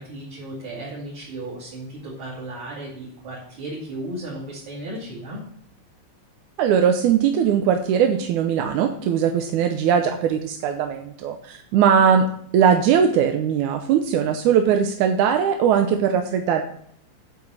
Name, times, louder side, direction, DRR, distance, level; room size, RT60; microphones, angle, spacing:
voice 1, 0.0-5.4, right 1 dB, 45° right, -7 dB, 3.4 m, -35 dB
voice 2, 6.6-12.3 12.5-16.6, right 8 dB, 90° right, 6 dB, 2.2 m, -20 dB
9.1 x 5.0 x 7.2 m, 0.67 s
omnidirectional pair, 3.4 m